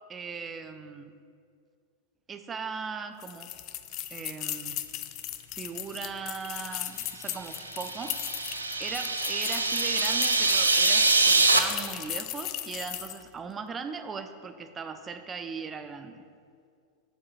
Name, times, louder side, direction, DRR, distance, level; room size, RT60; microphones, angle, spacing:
voice 1, 0.1-1.1 2.3-3.5 4.1-4.8 5.5-16.2, right 5 dB, 20° right, 8 dB, 0.5 m, -39 dB
sound 1, 3.2-13.3, left 13 dB, 40° left, 0.4 m, -37 dB
sound 2, 7.4-11.6, right 3 dB, 80° right, 0.5 m, -24 dB
7.1 x 4.7 x 7.0 m, 2.3 s
figure-of-eight pair, 90°, 0 cm